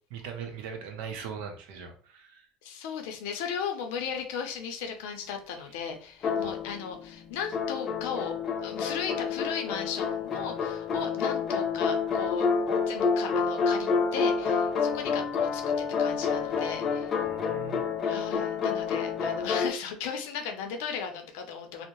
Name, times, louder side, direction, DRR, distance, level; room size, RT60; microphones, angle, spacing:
voice 1, 0.1-2.5 6.4-6.5 16.2-16.4 17.2-17.9, right 6 dB, 70° right, 4 dB, 0.6 m, -40 dB
voice 2, 2.6-8.3 8.6-12.5 12.7-17.2 18.0-21.9, left 7 dB, 80° left, 5 dB, 0.5 m, -36 dB
sound 1, 6.2-7.1 7.5-19.7, left 5 dB, 25° left, 0.3 m, -28 dB
2.6 x 2.0 x 2.9 m, 0.43 s
cardioid pair, 175°, 0 cm